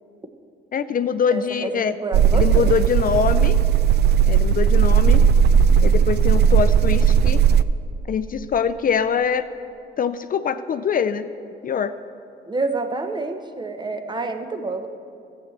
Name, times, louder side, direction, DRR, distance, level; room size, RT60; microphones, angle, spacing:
voice 1, 0.7-2.0 2.3-3.6 4.3-5.3 5.8-7.4 8.1-9.5 10.0-11.3 11.6-11.9, left 7 dB, 45° left, 12 dB, 0.5 m, -23 dB
voice 2, 1.3-2.8 12.5-14.9, right 3 dB, 20° right, 7 dB, 1.0 m, -28 dB
sound 1, 2.1-7.6, right 7 dB, 55° right, 0.4 m, -16 dB
13.5 x 8.0 x 7.2 m, 2.5 s
cardioid pair, 90°, 20 cm